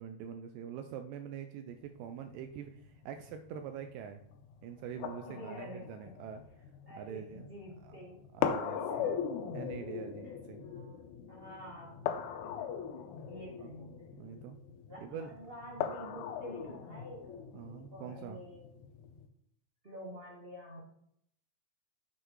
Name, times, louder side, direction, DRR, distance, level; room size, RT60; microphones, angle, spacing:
voice 1, 0.0-4.2 4.6-6.4 7.0-7.5 7.8-7.9 8.3-9.1 9.6-10.7 13.6-13.7 14.1-14.6 15.0-15.3 17.5-18.4, right 8 dB, 80° right, 7 dB, 2.1 m, -44 dB
sound 1, 1.7-19.3, left 8 dB, 75° left, 1.9 m, -40 dB
voice 2, 5.2-6.1 6.9-8.2 8.7-9.3 10.2-12.1 12.4-12.7 13.3-14.0 14.9-17.5 17.9-18.6 19.8-20.8, equal, 50° right, -4 dB, 0.6 m, -48 dB
7.7 x 6.3 x 4.6 m, 0.73 s
omnidirectional pair, 4.0 m